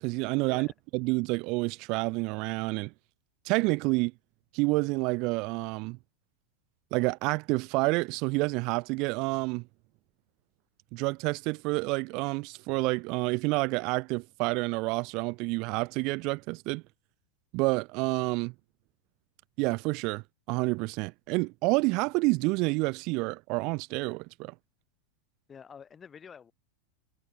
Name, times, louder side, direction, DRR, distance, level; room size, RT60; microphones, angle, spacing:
voice 1, 0.0-0.7 0.9-2.9 3.4-4.1 4.5-6.0 6.9-9.6 10.9-16.8 17.5-18.5 19.6-24.5, right 26 dB, 55° right, 0.6 m, -29 dB
voice 2, 25.5-26.5, left 7 dB, 25° left, 3.2 m, -48 dB
supercardioid pair, 120°, 0 cm